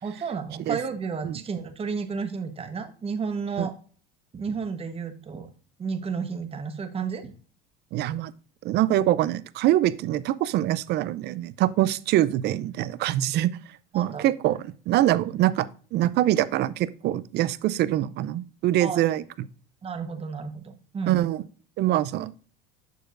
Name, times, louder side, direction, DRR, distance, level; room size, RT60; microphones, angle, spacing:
voice 1, 0.0-3.7 4.3-5.5 5.8-7.3 13.9-14.3 15.2-15.4 18.8-19.0 19.8-21.2, right 5 dB, 25° right, 8 dB, 1.1 m, -32 dB
voice 2, 7.9-8.3 8.6-13.6 13.9-14.6 14.9-19.2 21.1-21.4 21.8-22.3, right 14 dB, 50° right, 17 dB, 0.5 m, -24 dB
6.7 x 6.5 x 2.5 m, 0.40 s
supercardioid pair, 100°, 21 cm